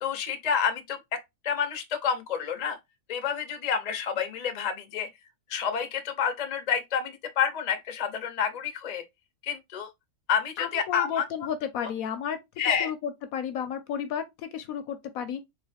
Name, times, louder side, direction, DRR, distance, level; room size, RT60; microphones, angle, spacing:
voice 1, 0.0-1.2 1.4-2.8 3.1-5.1 5.5-9.0 9.4-9.9 10.3-11.2 11.8-11.9 12.6-12.9, left 7 dB, 45° left, 0.5 m, -29 dB
voice 2, 10.6-12.4 12.7-15.4, left 8 dB, 70° left, 0.9 m, -33 dB
3.8 x 2.8 x 3.3 m
omnidirectional pair, 1.7 m